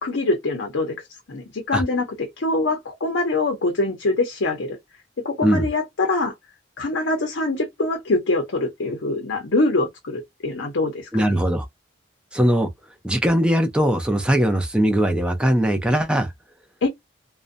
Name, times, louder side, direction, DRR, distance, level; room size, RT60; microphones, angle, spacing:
voice 1, 0.0-0.9 1.3-4.8 5.2-6.3 6.8-11.4 16.8-16.9, left 2 dB, 75° left, 0.6 m, -24 dB
voice 2, 11.1-11.7 12.3-12.7 13.0-16.3, right 1 dB, 5° right, 0.4 m, -20 dB
2.6 x 2.1 x 2.4 m
head